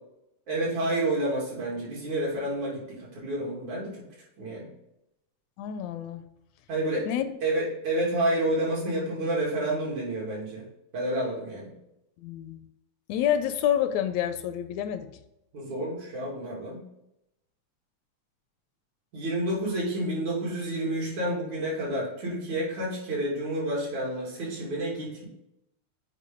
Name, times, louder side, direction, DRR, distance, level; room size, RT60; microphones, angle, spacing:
voice 1, 0.5-4.0 4.4-4.7 6.7-7.1 7.4-10.6 10.9-11.7 15.5-16.8 19.1-25.3, right 1 dB, 75° right, -4 dB, 4.0 m, -29 dB
voice 2, 5.6-6.2 7.1-7.3 12.2-12.7 13.1-15.1, left 10 dB, 80° left, 9 dB, 1.8 m, -28 dB
8.3 x 4.9 x 3.7 m, 0.85 s
omnidirectional pair, 3.3 m